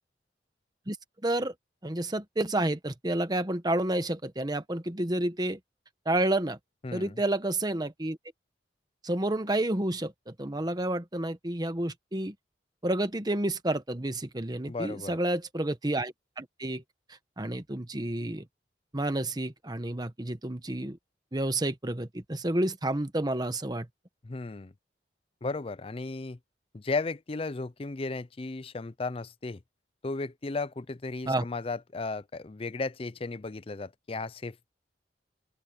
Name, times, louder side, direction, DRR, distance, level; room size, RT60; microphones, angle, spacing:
voice 1, 1.2-1.5 1.8-5.6 6.0-6.6 6.9-8.2 9.0-12.3 12.8-16.8 17.4-18.4 18.9-21.0 21.3-23.9 31.3-31.4, right 1 dB, 25° right, 1.1 m, -30 dB
voice 2, 6.8-7.2 14.7-15.2 24.2-24.7 25.4-26.4 26.7-29.6 30.0-34.7, left 3 dB, 30° left, 0.5 m, -35 dB
open air
head